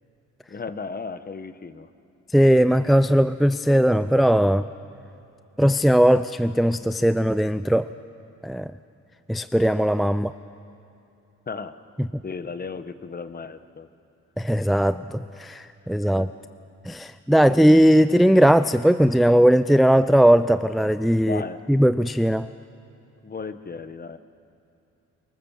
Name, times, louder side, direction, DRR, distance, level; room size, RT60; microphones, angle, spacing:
voice 1, 0.5-1.9 11.5-11.8 12.2-13.9 16.0-16.3 21.2-21.7 23.2-24.2, left 4 dB, 30° left, 11 dB, 1.2 m, -35 dB
voice 2, 2.3-4.7 5.6-7.9 8.4-8.7 9.3-10.3 14.4-16.3 16.9-21.4 21.7-22.5, equal, ahead, 13 dB, 0.4 m, -18 dB
24.0 x 21.0 x 7.4 m, 2.8 s
cardioid pair, 90°, 30 cm